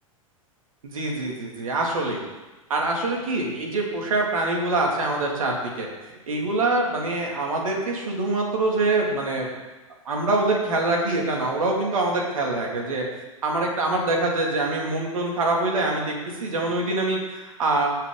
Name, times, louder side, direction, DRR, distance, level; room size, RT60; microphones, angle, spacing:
voice 1, 0.8-2.2 2.7-5.9 6.3-9.5 10.1-13.0 13.4-17.9, right 2 dB, 70° right, 0 dB, 2.6 m, -24 dB
16.5 x 5.9 x 3.9 m, 1.1 s
figure-of-eight pair, 95°, 18 cm